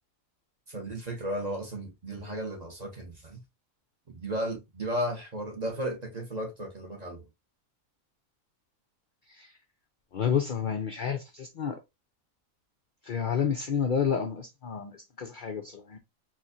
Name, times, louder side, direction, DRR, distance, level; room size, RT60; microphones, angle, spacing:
voice 1, 0.7-3.4 4.1-7.2, equal, 35° right, 0.8 m, -34 dB
voice 2, 10.1-11.8 13.0-16.0, left 7 dB, 75° left, 0.4 m, -30 dB
4.3 x 2.4 x 2.5 m
omnidirectional pair, 1.5 m